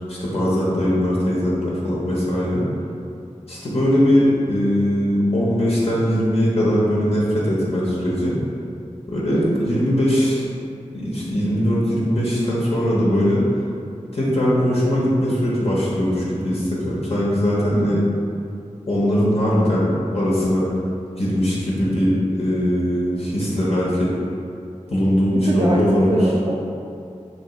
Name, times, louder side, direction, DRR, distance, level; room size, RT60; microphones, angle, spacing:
voice 1, 0.1-2.6 3.5-8.3 9.1-10.4 10.9-13.4 14.1-18.0 18.9-19.9 20.1-20.7 21.2-24.1 24.9-26.2, equal, 50° left, -7 dB, 0.8 m, -20 dB
voice 2, 9.3-9.6 17.7-18.0 25.5-25.8 26.1-26.5, right 2 dB, 40° right, -2 dB, 0.3 m, -23 dB
3.0 x 2.9 x 4.2 m, 2.5 s
wide cardioid pair, 55°, 13 cm